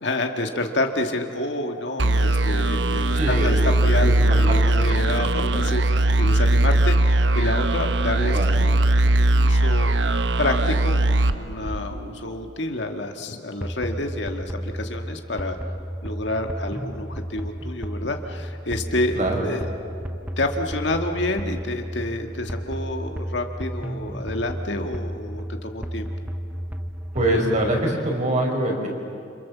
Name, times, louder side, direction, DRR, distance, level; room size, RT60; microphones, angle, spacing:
voice 1, 0.0-8.8 9.2-9.9 10.4-15.6 16.0-19.2 19.4-19.7 20.4-26.1, left 2 dB, 75° left, 4 dB, 2.0 m, -28 dB
sound 1, 2.0-12.3, right 1 dB, 75° right, 1.0 m, -20 dB
voice 2, 3.2-3.5 3.9-4.6 8.3-8.6 19.2-19.5 27.1-28.9, right 1 dB, 40° right, 0 dB, 5.5 m, -24 dB
sound 2, 13.6-27.8, equal, 10° right, 1.0 m, -33 dB
29.0 x 27.5 x 7.4 m, 2.5 s
head